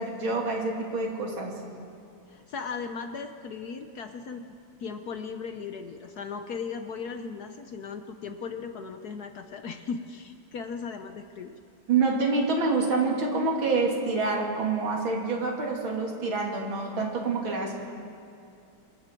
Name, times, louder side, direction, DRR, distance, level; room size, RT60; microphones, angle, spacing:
voice 1, 0.0-1.5 11.9-17.8, right 3 dB, 75° right, 0 dB, 3.4 m, -27 dB
voice 2, 2.3-4.5 4.8-11.5, left 5 dB, 60° left, 7 dB, 1.1 m, -37 dB
26.5 x 21.5 x 4.6 m, 2.6 s
omnidirectional pair, 2.2 m